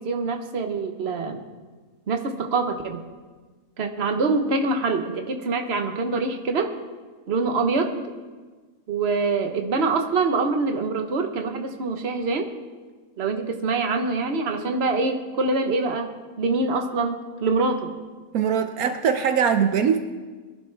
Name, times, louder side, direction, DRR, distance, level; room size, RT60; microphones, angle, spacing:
voice 1, 0.0-1.4 2.1-3.0 3.8-6.7 7.3-8.0 8.9-12.5 13.2-17.9, right 3 dB, 45° right, 5 dB, 1.3 m, -25 dB
voice 2, 18.3-20.0, right 7 dB, 75° right, 7 dB, 1.2 m, -21 dB
23.0 x 11.5 x 3.4 m, 1.4 s
omnidirectional pair, 1.6 m